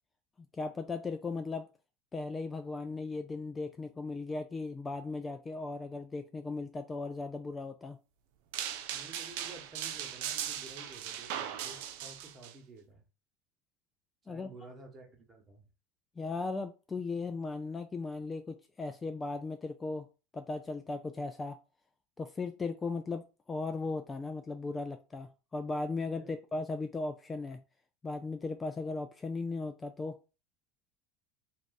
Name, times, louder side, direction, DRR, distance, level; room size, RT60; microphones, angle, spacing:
voice 1, 0.5-1.7 2.1-8.0 14.3-14.5 16.2-20.1 20.3-21.6 22.2-27.6 28.0-30.2, left 3 dB, 20° left, 0.3 m, -37 dB
sound 1, 8.5-12.5, right 10 dB, 70° right, 0.4 m, -38 dB
voice 2, 8.9-13.0 14.3-15.7 26.2-26.3, right 2 dB, 25° right, 1.2 m, -52 dB
2.5 x 2.2 x 3.9 m
supercardioid pair, 100°, 0 cm